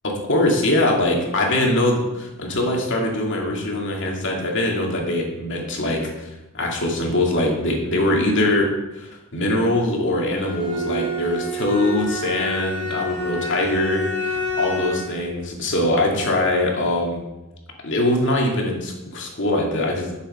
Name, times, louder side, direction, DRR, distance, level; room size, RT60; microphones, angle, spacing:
voice 1, 0.0-6.3 6.5-17.3 17.8-20.1, left 1 dB, 60° left, 0 dB, 2.4 m, -22 dB
Bowed string instrument, 10.3-15.1, left 1 dB, 35° right, 4.1 m, -28 dB
10.5 x 6.9 x 5.5 m, 0.99 s
head